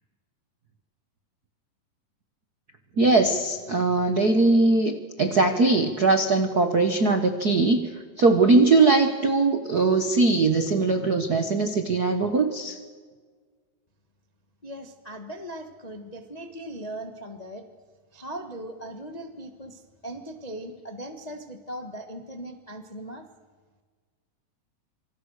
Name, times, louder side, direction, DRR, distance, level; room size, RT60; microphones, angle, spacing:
voice 1, 3.0-7.9 8.2-12.8, right 3 dB, 65° right, 6 dB, 0.9 m, -21 dB
voice 2, 14.6-17.6 18.1-23.2, right 1 dB, 60° left, 5 dB, 0.4 m, -39 dB
27.5 x 26.0 x 6.6 m, 1.5 s
omnidirectional pair, 3.8 m